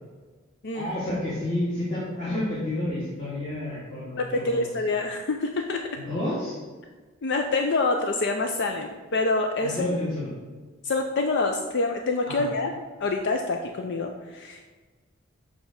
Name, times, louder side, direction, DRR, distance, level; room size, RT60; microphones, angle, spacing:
voice 1, 0.7-4.7 5.9-6.6 9.6-10.3 12.3-12.4, left 1 dB, 30° left, -9 dB, 1.8 m, -30 dB
voice 2, 4.2-6.0 7.2-10.0 10.8-12.7 13.0-14.7, left 3 dB, 55° left, 4 dB, 0.5 m, -26 dB
7.6 x 3.4 x 6.4 m, 1.4 s
head